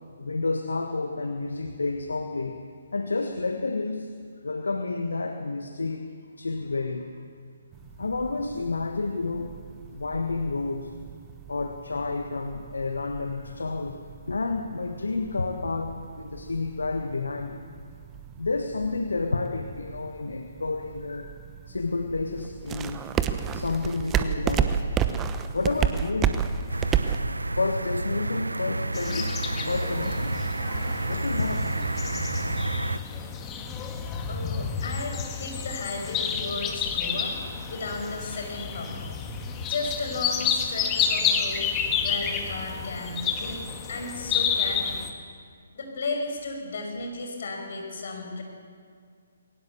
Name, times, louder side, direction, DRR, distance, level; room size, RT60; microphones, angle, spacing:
voice 1, 0.2-2.6 2.9-4.2 4.4-7.1 8.0-9.6 9.9-10.9 11.5-14.0 14.3-17.6 18.4-21.4 21.7-23.1 23.5-24.8 25.5-26.5 27.6-30.4 31.1-31.9 44.1-44.2, left 3 dB, 75° left, 6 dB, 1.4 m, -30 dB
sound 1, 7.7-27.2, right 8 dB, 15° right, 0.9 m, -33 dB
sound 2, 26.7-33.0, right 2 dB, 80° right, 0.7 m, -30 dB
sound 3, 28.9-45.1, left 7 dB, 20° left, 1.7 m, -30 dB
voice 2, 34.3-37.4 37.7-38.9 39.7-41.7 42.0-44.9 45.7-48.4, left 3 dB, 55° left, 2 dB, 5.8 m, -34 dB
21.5 x 18.5 x 7.1 m, 2.1 s
figure-of-eight pair, 135°, 0 cm